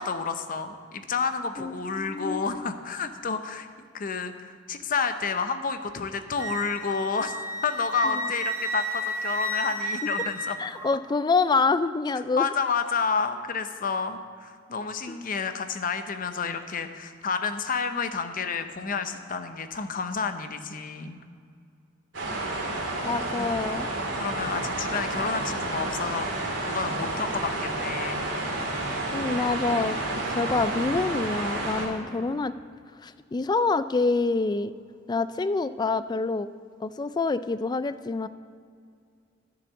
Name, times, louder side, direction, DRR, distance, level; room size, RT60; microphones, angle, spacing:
voice 1, 0.0-3.7 3.9-7.4 7.6-10.6 12.4-21.2 23.2-23.6 24.2-28.3 31.7-32.2, left 5 dB, 45° left, 8 dB, 0.7 m, -30 dB
voice 2, 1.6-2.5 8.0-8.1 10.6-12.5 15.1-15.2 23.0-23.9 29.1-32.5 33.0-34.7 35.1-36.5 36.8-38.3, left 3 dB, 20° left, 13 dB, 0.3 m, -26 dB
Wind instrument woodwind instrument, 6.4-11.0, right 1 dB, 15° right, 1.1 m, -32 dB
sound 1, 22.1-31.9, right 2 dB, 70° right, 2.8 m, -30 dB
11.0 x 7.2 x 7.0 m, 2.2 s
head